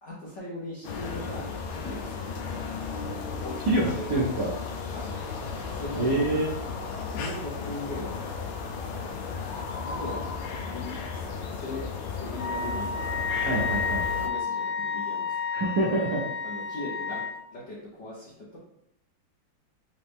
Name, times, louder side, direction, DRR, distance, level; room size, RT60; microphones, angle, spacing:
voice 1, 0.0-2.2 3.4-4.1 4.9-5.2 5.7-6.1 7.1-8.3 9.9-10.3 10.6-13.1 13.4-13.8 14.1-15.4 16.4-17.3 17.5-18.6, left 2 dB, 45° left, -7 dB, 1.0 m, -39 dB
sound 1, 0.8-14.3, left 5 dB, 80° left, 1.4 m, -34 dB
voice 2, 3.7-4.5 6.0-6.5 13.4-14.0 15.5-16.3, right 2 dB, 65° right, -5 dB, 1.1 m, -26 dB
Wind instrument woodwind instrument, 12.4-17.3, left 5 dB, 60° left, 1.7 m, -31 dB
4.0 x 3.2 x 3.5 m, 0.77 s
omnidirectional pair, 2.3 m